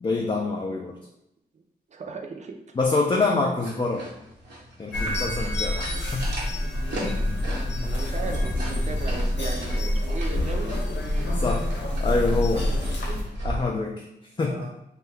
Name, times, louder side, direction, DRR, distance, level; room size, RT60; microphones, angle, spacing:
voice 1, 0.0-1.0 2.8-4.1 4.8-6.4 7.0-7.3 11.3-11.7 12.0-12.6 13.4-14.1 14.4-14.7, left 3 dB, 30° left, 1 dB, 0.4 m, -26 dB
voice 2, 1.9-2.6 7.8-10.7 12.5-13.2 14.4-14.7, right 4 dB, 40° right, 3 dB, 0.5 m, -37 dB
sound 1, 3.6-13.6, right 1 dB, 80° right, 0.9 m, -39 dB
sound 2, 4.9-13.2, left 1 dB, 85° left, 0.7 m, -27 dB
2.7 x 2.2 x 3.2 m, 0.84 s
cardioid pair, 65°, 18 cm